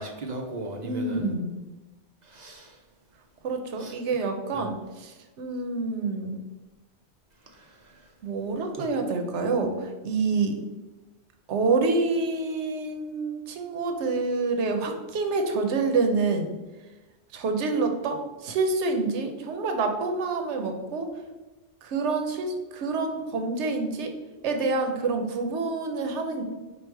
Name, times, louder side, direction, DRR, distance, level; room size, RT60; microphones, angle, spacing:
voice 1, 0.0-1.2 2.3-2.7 3.8-3.9 4.5-4.7 7.6-7.7 8.8-8.9, right 2 dB, 50° right, 2 dB, 0.6 m, -36 dB
voice 2, 0.8-1.6 3.4-6.4 8.2-10.6 11.5-16.5 17.3-21.1 21.8-24.1 24.4-26.4, right 3 dB, 75° right, 5 dB, 1.0 m, -27 dB
4.7 x 2.4 x 4.5 m, 1.1 s
omnidirectional pair, 1.2 m